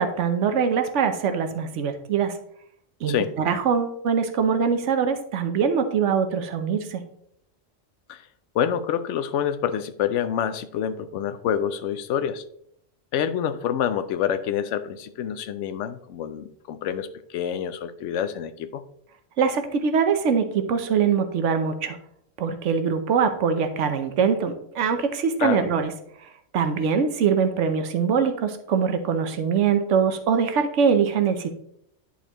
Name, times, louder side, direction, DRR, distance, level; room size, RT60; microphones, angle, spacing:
voice 1, 0.0-2.3 3.0-7.0 19.4-22.0 22.4-25.9 26.5-31.5, right 6 dB, 80° right, 8 dB, 1.1 m, -23 dB
voice 2, 8.5-12.4 13.1-18.8 25.4-25.7, left 9 dB, 80° left, 11 dB, 0.9 m, -27 dB
10.5 x 4.2 x 2.9 m, 0.71 s
omnidirectional pair, 1.2 m